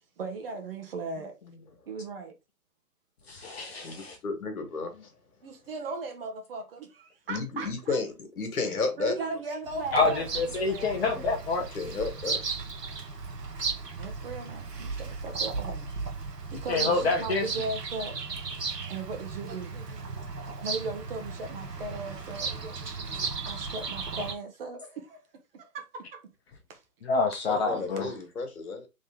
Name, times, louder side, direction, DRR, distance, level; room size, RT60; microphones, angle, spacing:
voice 1, 0.2-1.4 1.9-2.3 5.4-8.0 9.0-11.4 14.0-15.9 16.5-18.1 18.9-25.2 25.5-26.2 26.7-26.8, right 3 dB, 35° right, 1.0 m, -38 dB
voice 2, 3.3-4.2 9.9-11.7 16.7-17.5 27.0-28.1, left 3 dB, 40° left, 0.9 m, -27 dB
voice 3, 3.8-5.1 5.6-5.8 7.3-9.2 11.7-12.4 16.8-17.0 27.5-28.9, left 4 dB, 65° left, 1.7 m, -32 dB
Bird vocalization bird call bird song, 9.6-24.3, right 4 dB, 85° right, 1.2 m, -36 dB
3.8 x 3.2 x 3.5 m
figure-of-eight pair, 135°, 47 cm